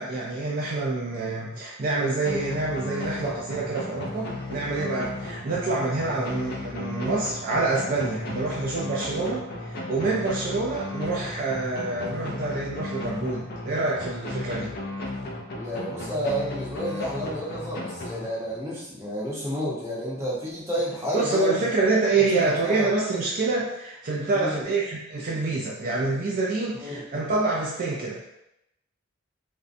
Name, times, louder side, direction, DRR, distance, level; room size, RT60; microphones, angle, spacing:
voice 1, 0.0-14.7 21.1-28.2, right 3 dB, 45° right, -4 dB, 0.4 m, -27 dB
sound 1, 2.2-18.8, left 2 dB, 50° left, 0.4 m, -35 dB
voice 2, 15.5-21.6 21.8-22.0 22.3-23.2 24.3-24.6 26.8-27.0, equal, 15° right, -7 dB, 0.7 m, -31 dB
2.5 x 2.1 x 2.5 m, 0.83 s
head